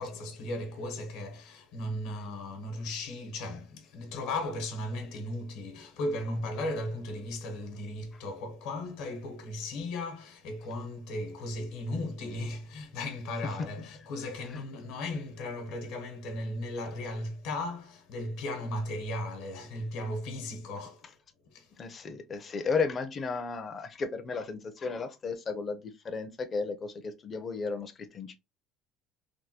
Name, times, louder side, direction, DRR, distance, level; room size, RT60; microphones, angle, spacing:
voice 1, 0.0-21.1 21.4-21.7, left 1 dB, 70° left, 1.0 m, -36 dB
voice 2, 21.8-28.3, left 4 dB, 25° left, 0.5 m, -34 dB
3.4 x 2.2 x 2.8 m
cardioid pair, 150°, 0 cm